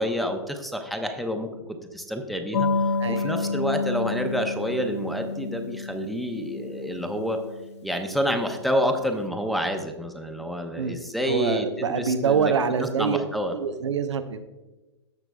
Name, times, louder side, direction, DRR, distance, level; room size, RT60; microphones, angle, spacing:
voice 1, 0.0-1.5 1.9-2.7 3.2-7.4 7.8-12.5 12.8-13.5, equal, ahead, 4 dB, 0.8 m, -28 dB
sound 1, 2.5-8.7, left 4 dB, 70° left, 0.6 m, -30 dB
voice 2, 3.0-3.5 10.8-11.0 11.3-13.2 13.5-14.4, right 6 dB, 80° right, 8 dB, 0.7 m, -25 dB
15.0 x 5.9 x 2.3 m, 1.1 s
hypercardioid pair, 110°, 15 cm